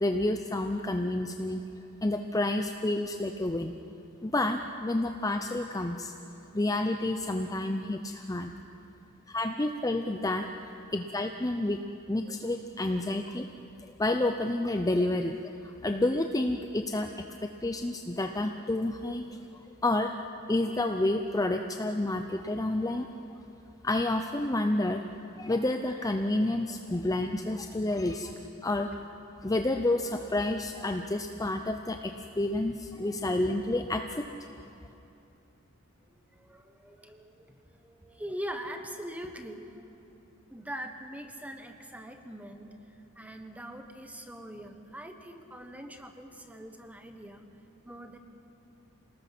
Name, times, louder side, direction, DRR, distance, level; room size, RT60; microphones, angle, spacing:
voice 1, 0.0-1.6 2.0-3.7 4.2-6.1 6.5-8.5 9.3-10.5 10.9-11.8 12.1-13.5 14.0-17.1 17.4-19.4 19.8-20.2 20.5-23.1 23.8-25.0 25.4-28.3 28.6-28.9 29.4-34.3, left 2 dB, 15° left, 5 dB, 0.6 m, -29 dB
voice 2, 36.1-40.0 40.5-42.8 43.2-47.5 47.8-48.2, equal, 5° right, 6 dB, 1.2 m, -42 dB
27.0 x 19.0 x 6.1 m, 2.8 s
head